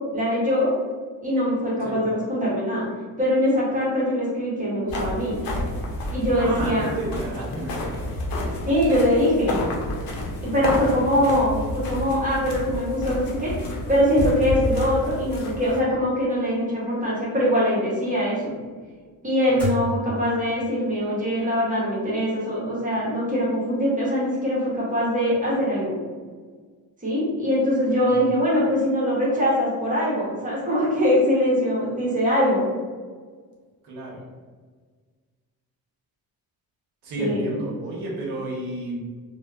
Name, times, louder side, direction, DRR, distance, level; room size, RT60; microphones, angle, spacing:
voice 1, 0.1-0.7 1.2-2.8 3.2-5.4 6.1-6.9 8.6-9.6 10.5-13.5 13.9-18.5 19.2-26.0 27.0-32.6 37.2-37.4, equal, 20° right, -7 dB, 0.8 m, -22 dB
sound 1, 4.9-15.8, left 1 dB, 60° left, 0.6 m, -30 dB
voice 2, 6.3-8.4 10.3-11.1 19.5-19.6 27.9-28.2 33.8-34.2 37.0-39.0, right 2 dB, 90° right, -3 dB, 0.8 m, -32 dB
sound 2, 16.6-21.0, left 1 dB, 5° left, 1.0 m, -37 dB
2.7 x 2.0 x 2.3 m, 1.5 s
cardioid pair, 135°, 38 cm